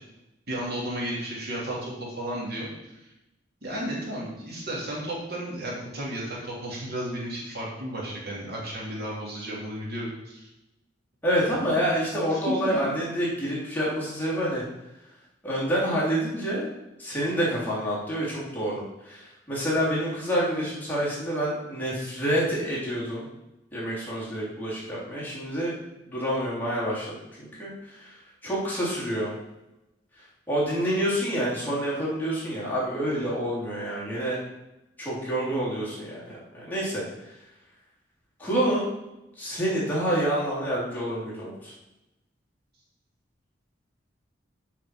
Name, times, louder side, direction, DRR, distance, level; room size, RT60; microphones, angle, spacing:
voice 1, 0.5-3.0 3.6-10.5 12.3-12.4 12.7-12.8, right 1 dB, 60° right, -4 dB, 2.7 m, -33 dB
voice 2, 11.2-14.6 15.4-16.7 17.0-23.3 23.7-25.7 26.1-28.2 28.4-29.3 30.5-34.4 35.0-37.0 38.4-38.9 39.4-41.7, equal, 10° left, -7 dB, 3.0 m, -28 dB
8.0 x 5.0 x 6.1 m, 0.93 s
head